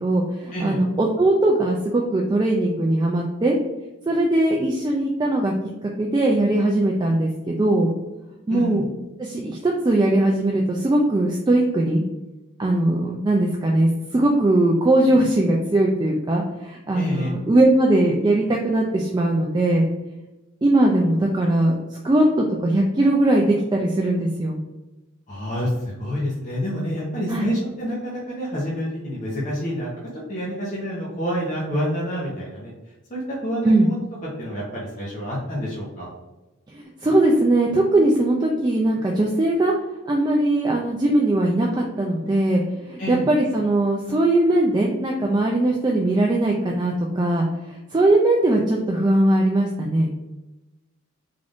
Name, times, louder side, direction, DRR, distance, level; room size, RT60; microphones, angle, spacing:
voice 1, 0.0-3.6 4.1-5.5 5.8-7.9 8.5-8.8 9.2-12.0 12.6-19.8 20.6-24.6 27.3-27.5 33.6-33.9 36.7-39.7 40.1-50.1, right 1 dB, 20° right, -1 dB, 0.3 m, -20 dB
voice 2, 8.5-8.8 16.9-17.3 25.3-29.9 30.3-32.7 33.1-34.0 34.4-36.1 43.0-43.3, equal, 35° left, -6 dB, 0.8 m, -28 dB
3.7 x 2.5 x 3.4 m, 1.1 s
head